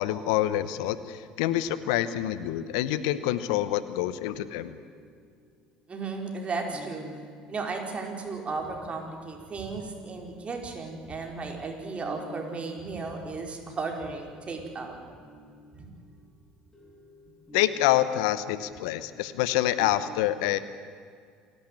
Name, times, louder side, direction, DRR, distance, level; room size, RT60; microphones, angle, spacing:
voice 1, 0.0-4.8 17.5-20.6, left 13 dB, 75° left, 14 dB, 0.9 m, -27 dB
sound 1, 1.4-6.0 6.7-9.3 9.9-11.3 12.0-20.1, equal, 10° left, 5.7 m, -51 dB
voice 2, 5.9-7.1 7.5-15.0 15.8-15.9, right 4 dB, 35° right, 2 dB, 5.0 m, -35 dB
28.5 x 12.0 x 9.1 m, 2.1 s
hypercardioid pair, 65°, 4 cm